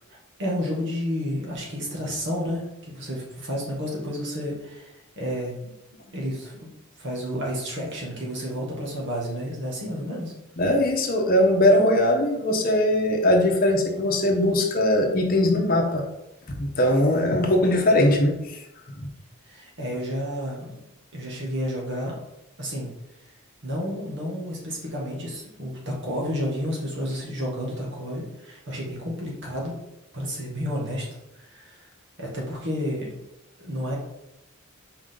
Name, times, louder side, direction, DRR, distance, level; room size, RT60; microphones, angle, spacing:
voice 1, 0.4-5.7 6.1-6.7 7.0-10.3 19.4-20.8 21.1-22.1 22.6-22.9 23.6-29.7 30.1-31.0 31.4-31.9 32.2-33.2 33.6-34.0, equal, 55° right, -3 dB, 1.9 m, -31 dB
voice 2, 10.6-16.0 16.5-18.6 19.0-19.1, left 1 dB, 40° left, 2 dB, 0.9 m, -20 dB
5.0 x 5.0 x 3.8 m, 0.87 s
head